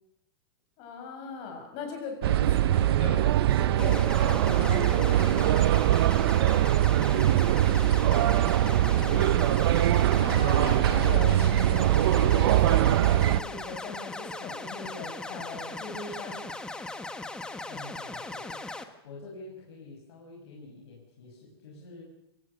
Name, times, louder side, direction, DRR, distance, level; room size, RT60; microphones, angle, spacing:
voice 1, 0.8-5.6 8.5-9.9 10.2-16.5, left 4 dB, 40° left, 3 dB, 6.8 m, -39 dB
sound 1, 2.2-13.4, right 13 dB, 65° right, 0.8 m, -22 dB
sound 2, 3.8-18.8, left 2 dB, 5° left, 1.2 m, -38 dB
voice 2, 7.1-7.9 17.7-22.0, left 3 dB, 75° left, -2 dB, 6.0 m, -47 dB
25.5 x 18.0 x 6.7 m, 0.80 s
supercardioid pair, 155°, 14 cm